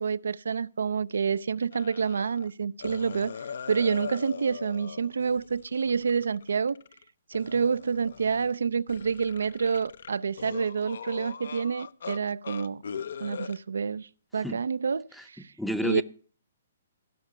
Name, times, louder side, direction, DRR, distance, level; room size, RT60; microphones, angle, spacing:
voice 1, 0.0-3.3 3.7-6.8 7.3-12.8 13.2-15.5 15.8-16.0, right 6 dB, 80° right, 0.4 m, -28 dB
sound 1, 1.7-2.5 2.8-7.0 7.3-8.6 8.9-12.2 12.4-13.6, left 6 dB, 70° left, 0.6 m, -41 dB
voice 2, 15.6-16.0, equal, ahead, 0.6 m, -30 dB
16.0 x 5.8 x 6.6 m
hypercardioid pair, 145°, 0 cm